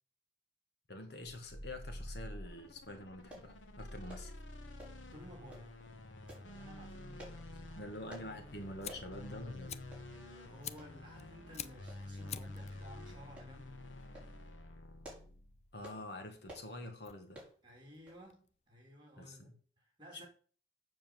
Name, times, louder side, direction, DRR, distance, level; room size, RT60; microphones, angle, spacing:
voice 1, 0.9-4.3 7.7-9.9 15.7-17.4 19.2-19.5, left 1 dB, 60° left, 1.7 m, -46 dB
sound 1, 1.2-15.8, left 1 dB, 85° left, 1.4 m, -49 dB
sound 2, 3.3-3.5 4.1-4.3 4.8-5.1 5.5-5.7 6.3-6.5 7.2-7.4 8.1-8.3 8.9-9.1 9.5-9.6 9.9-10.1 10.8-10.9 11.9-12.3 12.6-12.8 13.4-13.5 14.0-14.3 14.8-15.3 15.8-16.0 16.5-16.7 17.3-17.6 18.1-18.2 18.5-18.6, right 1 dB, 5° right, 4.8 m, -52 dB
voice 2, 5.1-5.9 6.2-8.0 10.1-13.8 17.6-20.3, equal, 25° right, 3.5 m, -55 dB
Fire, 8.7-18.9, left 9 dB, 35° left, 0.4 m, -51 dB
7.4 x 6.0 x 7.7 m
head